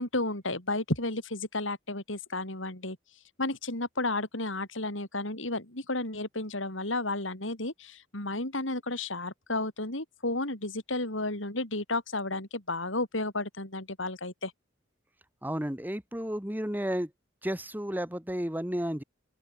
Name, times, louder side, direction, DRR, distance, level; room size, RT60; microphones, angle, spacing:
voice 1, 0.0-3.0 3.4-14.5, left 2 dB, 75° left, 7.1 m, -32 dB
voice 2, 15.4-17.1 17.4-19.0, equal, 10° right, 1.6 m, -32 dB
open air
head